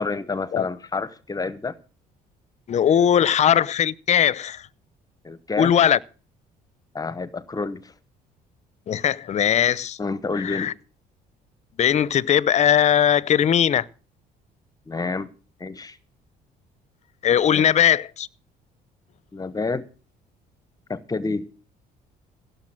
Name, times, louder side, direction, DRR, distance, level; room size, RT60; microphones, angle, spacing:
voice 1, 0.0-1.8 5.2-5.8 6.9-7.9 10.0-10.7 14.9-15.3 15.6-16.0 17.5-17.6 19.3-19.9 20.9-21.4, left 3 dB, 20° left, 0.9 m, -29 dB
voice 2, 2.7-4.6 5.6-6.0 8.9-10.0 10.4-10.7 11.8-13.9 17.2-18.3, left 9 dB, 40° left, 0.6 m, -19 dB
16.5 x 6.8 x 7.5 m
cardioid pair, 110°, 17 cm